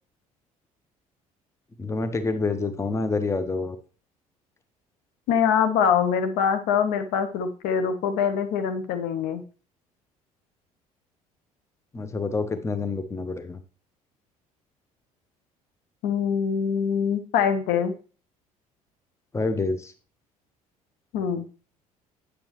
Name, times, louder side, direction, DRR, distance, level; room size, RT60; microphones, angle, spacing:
voice 1, 1.8-3.8 11.9-13.6 19.3-19.9, left 3 dB, 15° left, 11 dB, 0.8 m, -27 dB
voice 2, 5.3-9.4 16.0-17.9 21.1-21.4, left 7 dB, 60° left, 9 dB, 0.7 m, -24 dB
8.8 x 6.4 x 3.0 m, 0.38 s
figure-of-eight pair, 55°, 18 cm